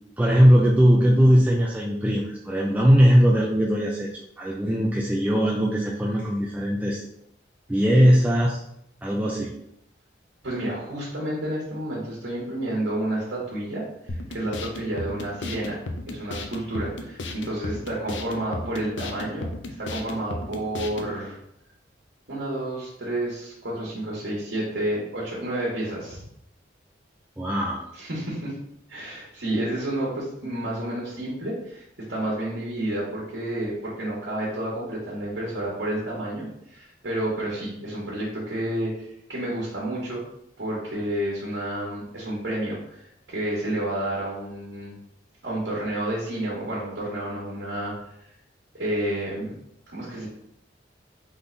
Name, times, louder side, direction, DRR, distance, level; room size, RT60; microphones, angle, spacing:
voice 1, 0.2-4.1 4.4-7.0 7.7-8.6 9.0-9.6 27.4-27.8, equal, 10° right, -2 dB, 0.4 m, -19 dB
voice 2, 10.4-15.8 16.1-19.5 19.8-21.4 22.3-26.2 27.9-28.6 28.9-40.2 40.6-44.9 45.4-47.9 48.7-49.5 49.9-50.3, right 1 dB, 70° right, -5 dB, 1.4 m, -30 dB
sound 1, 14.1-21.1, left 2 dB, 85° left, 0.6 m, -35 dB
3.9 x 3.7 x 3.3 m, 0.78 s
head